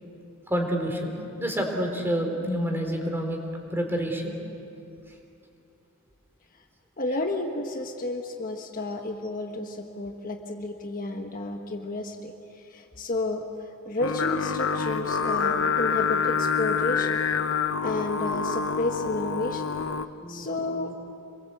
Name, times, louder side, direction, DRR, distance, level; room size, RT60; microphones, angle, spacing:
voice 1, 0.5-1.1 1.4-3.4 3.7-4.3 20.2-20.9, equal, 10° right, 2 dB, 3.7 m, -28 dB
voice 2, 7.0-13.5 13.8-17.2 17.8-19.7 20.3-20.9, left 2 dB, 40° left, 3 dB, 1.4 m, -31 dB
Singing, 14.0-20.1, left 6 dB, 65° left, 0.9 m, -27 dB
27.5 x 22.0 x 7.9 m, 2.7 s
head